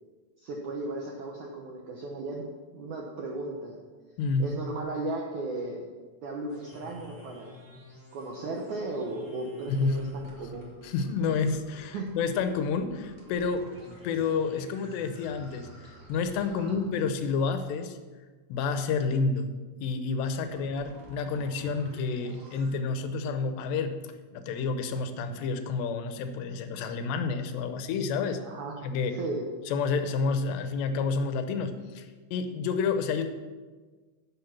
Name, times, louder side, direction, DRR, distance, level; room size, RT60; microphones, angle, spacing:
voice 1, 0.4-2.4 2.7-3.8 4.4-5.9 6.2-7.6 8.1-10.7 11.9-12.2 16.5-16.9 20.5-20.7 28.4-28.8 29.1-29.4, right 2 dB, 75° right, 0 dB, 1.7 m, -36 dB
sound 1, 6.5-17.3 20.2-22.7, left 1 dB, 5° right, 2.7 m, -51 dB
voice 2, 9.7-10.0 10.8-13.7 14.0-18.0 18.5-19.5 19.8-24.0 24.3-28.4 28.8-29.2 29.7-33.3, left 4 dB, 85° left, 8 dB, 2.9 m, -29 dB
10.5 x 7.7 x 5.8 m, 1.4 s
omnidirectional pair, 4.9 m